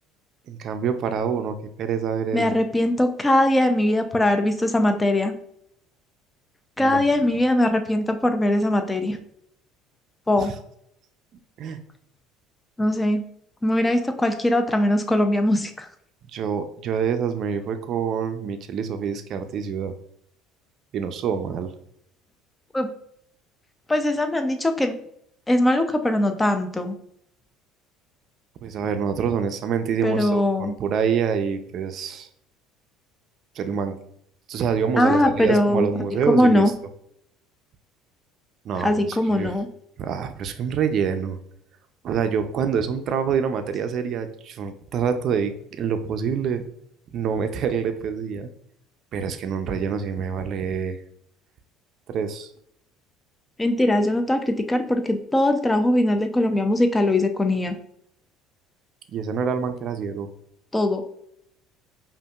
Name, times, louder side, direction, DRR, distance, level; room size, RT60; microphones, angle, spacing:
voice 1, 0.5-2.5 6.8-7.0 10.4-10.5 11.6-11.8 16.3-19.9 20.9-21.7 28.6-32.3 33.6-34.0 34.5-36.7 38.6-39.5 40.0-41.4 42.0-46.6 47.1-48.5 49.1-51.0 52.1-52.5 59.1-60.3, right 7 dB, 55° right, 8 dB, 0.5 m, -26 dB
voice 2, 2.3-5.3 6.8-9.2 10.3-10.5 12.8-13.2 13.6-15.9 22.7-22.9 23.9-24.9 25.5-27.0 30.0-30.7 35.0-35.9 36.3-36.7 38.8-39.7 53.6-57.8 60.7-61.0, left 1 dB, 15° left, 6 dB, 0.5 m, -21 dB
5.0 x 2.6 x 2.4 m, 0.70 s
supercardioid pair, 100°, 0 cm